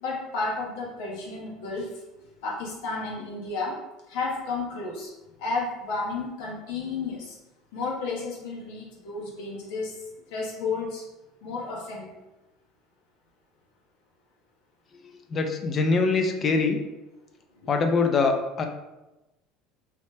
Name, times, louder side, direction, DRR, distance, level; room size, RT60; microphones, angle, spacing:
voice 1, 0.0-1.9 2.4-3.8 4.1-5.1 5.4-7.4 7.7-10.0 10.3-11.0 11.4-12.1, left 3 dB, 75° left, -2 dB, 0.9 m, -32 dB
voice 2, 15.3-16.8 17.7-18.7, left 4 dB, 40° left, 4 dB, 0.4 m, -23 dB
3.0 x 2.0 x 3.2 m, 1.0 s
supercardioid pair, 90°, 0 cm